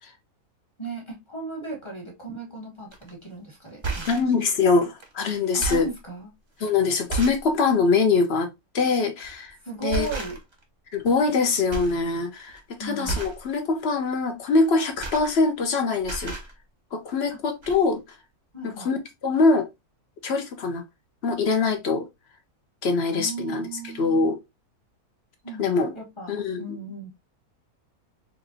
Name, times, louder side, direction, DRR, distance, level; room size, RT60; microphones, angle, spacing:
voice 1, 0.8-4.1 5.5-6.3 9.6-10.4 12.8-13.2 17.3-17.4 18.5-18.9 23.1-24.3 25.4-26.3 26.6-27.1, right 2 dB, 20° left, 1.7 m, -36 dB
sound 1, 2.9-3.1 3.7-4.3 5.0-5.1 5.4-6.0 6.6-6.7 7.1-7.5 7.9-8.1 9.2-9.5 9.9-10.6 10.9-11.4 11.7-12.0 12.3-12.6 13.0-13.4 14.6-15.7 16.0-16.5 17.3-17.4 17.6-17.8, right 4 dB, 30° right, 0.5 m, -32 dB
voice 2, 4.1-5.9 6.6-8.5 8.7-9.6 9.8-10.1 10.9-16.3 16.9-18.0 18.6-19.0 19.2-19.7 20.2-20.8 21.2-22.1 22.8-24.4 25.6-25.9 26.3-26.6, left 4 dB, 55° left, 0.8 m, -23 dB
4.2 x 2.6 x 2.6 m
omnidirectional pair, 1.6 m